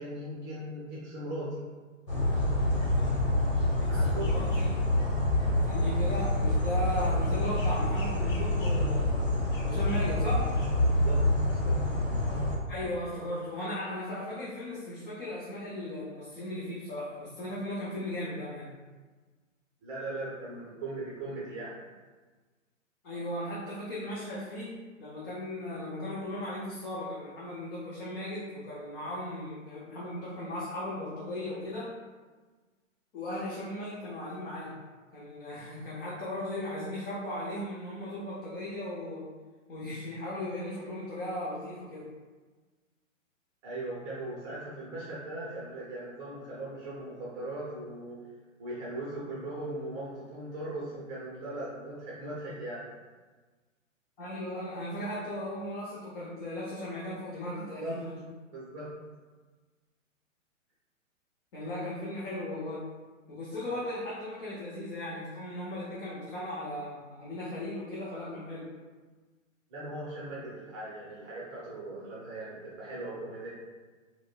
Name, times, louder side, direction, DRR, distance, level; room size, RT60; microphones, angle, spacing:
voice 1, 0.0-1.6 3.9-4.3 10.9-11.8 19.8-21.8 43.6-48.2 48.6-52.9 57.5-58.0 58.5-58.9 69.7-73.5, right 2 dB, 20° right, -7 dB, 0.6 m, -39 dB
sound 1, 2.1-12.6, left 1 dB, 65° left, 1.2 m, -27 dB
voice 2, 3.8-4.8 5.6-9.3 9.6-10.6 12.7-18.7 23.0-31.9 33.1-34.8 35.1-39.3 39.7-42.1 54.2-58.3 61.5-62.9 63.3-68.7, left 1 dB, 45° left, -8 dB, 0.8 m, -37 dB
4.7 x 2.2 x 2.2 m, 1.4 s
figure-of-eight pair, 120°, 40 cm